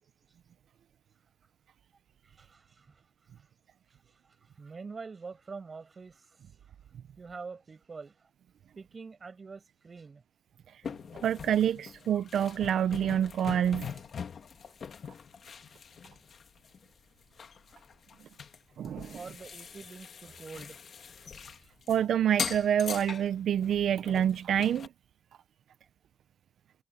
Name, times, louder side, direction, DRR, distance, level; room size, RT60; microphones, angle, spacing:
voice 1, 2.4-2.9 4.6-6.2 7.2-8.1 8.8-10.2 19.1-20.8, right 4 dB, 40° right, 6.3 m, -45 dB
sound 1, 10.8-17.0 17.4-22.0 22.3-24.9, left 6 dB, 60° left, 1.5 m, -42 dB
voice 2, 11.2-13.9 18.8-19.2 21.9-24.9, right 9 dB, 90° right, 0.5 m, -27 dB
cardioid pair, 110°, 0 cm